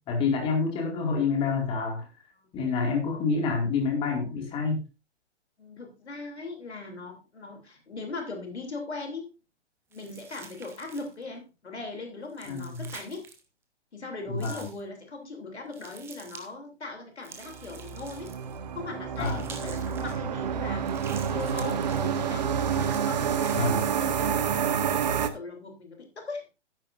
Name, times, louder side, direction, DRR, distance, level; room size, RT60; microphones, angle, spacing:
voice 1, 0.1-2.1 2.5-4.8 12.5-12.8 14.3-14.7 19.2-19.4 23.6-23.8, left 4 dB, 15° left, 3 dB, 2.2 m, -27 dB
voice 2, 5.6-9.3 9.9-13.3 13.9-18.3 18.7-20.8 21.1-23.7 24.0-26.4, left 3 dB, 65° left, 3 dB, 3.1 m, -39 dB
sound 1, 9.9-11.2 12.3-13.4 14.4-14.8 15.7-16.5 17.2-18.6 19.1-20.2 20.8-22.1 22.6-23.6, right 6 dB, 5° right, 0.8 m, -47 dB
sound 2, 17.4-25.3, right 7 dB, 35° right, 1.0 m, -28 dB
13.0 x 10.0 x 2.6 m, 0.28 s
figure-of-eight pair, 130°, 35 cm